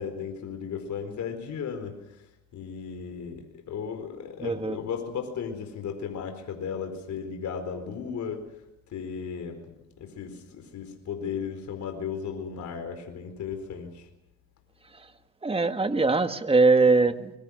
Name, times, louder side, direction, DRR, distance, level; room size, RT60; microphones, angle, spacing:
voice 1, 0.0-2.0 2.5-8.5 8.9-9.7 10.0-14.1, left 6 dB, 70° left, 6 dB, 4.5 m, -35 dB
voice 2, 4.4-4.8 15.4-17.3, right 3 dB, 20° right, 8 dB, 1.8 m, -21 dB
25.5 x 23.0 x 6.5 m, 0.89 s
cardioid pair, 90°, 30 cm